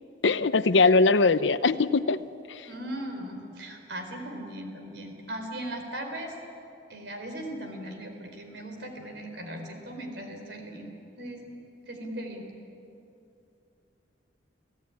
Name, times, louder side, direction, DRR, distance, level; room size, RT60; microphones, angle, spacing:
voice 1, 0.2-2.6, left 3 dB, 75° left, 14 dB, 0.7 m, -22 dB
voice 2, 2.6-6.3 6.9-10.9 11.2-11.6 11.9-12.5, right 1 dB, 60° right, 4 dB, 4.3 m, -38 dB
29.0 x 17.5 x 9.8 m, 2.7 s
head